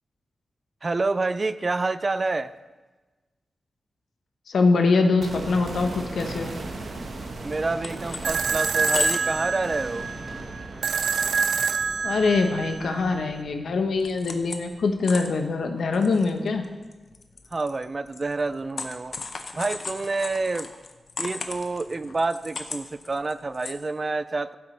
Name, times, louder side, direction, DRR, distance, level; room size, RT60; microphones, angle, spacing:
voice 1, 0.8-2.5 7.4-10.1 17.5-19.2 19.5-20.7 21.2-24.6, right 3 dB, 35° right, 14 dB, 0.3 m, -28 dB
voice 2, 4.5-6.5 12.0-16.7, left 3 dB, 80° left, 5 dB, 1.0 m, -23 dB
sound 1, 5.2-15.2 15.5-15.6, right 2 dB, 60° right, 1.3 m, -38 dB
sound 2, 7.2-7.3 7.5-8.3 8.7-9.4 9.8-9.9 10.4-10.5 10.8-11.4 11.6-11.7 12.3-13.4 13.7-14.7 15.0-23.7, left 4 dB, 55° left, 0.8 m, -35 dB
sound 3, 8.2-13.3, right 5 dB, 85° right, 0.5 m, -27 dB
15.0 x 7.9 x 3.3 m, 1.2 s
wide cardioid pair, 125°, 0 cm